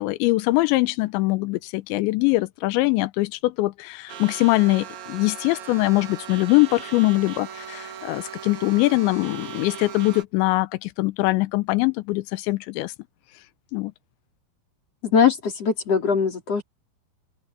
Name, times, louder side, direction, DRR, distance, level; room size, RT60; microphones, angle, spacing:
voice 1, 0.0-12.9 13.7-13.9, left 21 dB, 85° left, 3.0 m, -22 dB
sound 1, 4.1-10.2, right 8 dB, 80° right, 5.1 m, -38 dB
voice 2, 15.0-16.6, left 6 dB, 35° left, 4.7 m, -21 dB
open air
omnidirectional pair, 5.1 m